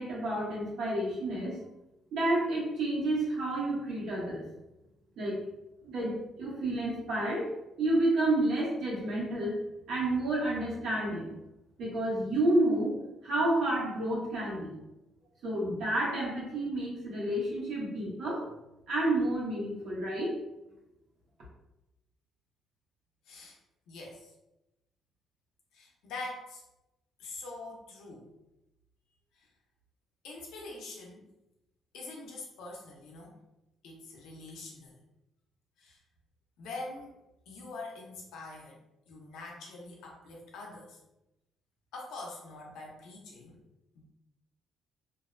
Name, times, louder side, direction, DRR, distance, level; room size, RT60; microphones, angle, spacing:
voice 1, 0.0-1.6 2.1-4.4 5.2-5.4 5.8-7.5 7.8-9.5 9.9-11.3 11.8-13.0 13.2-14.7 15.4-18.4 18.9-20.3, right 1 dB, 60° right, -6 dB, 1.0 m, -30 dB
voice 2, 23.2-23.6 23.9-24.3 25.7-26.6 27.2-28.3 29.3-29.5 30.2-31.3 31.9-33.4 33.8-35.0 35.8-36.0 36.6-37.1 37.5-38.8 39.1-41.0 41.9-43.6 43.9-44.0, left 2 dB, 90° left, -1 dB, 0.6 m, -44 dB
2.6 x 2.1 x 2.5 m, 0.92 s
cardioid pair, 165°, 0 cm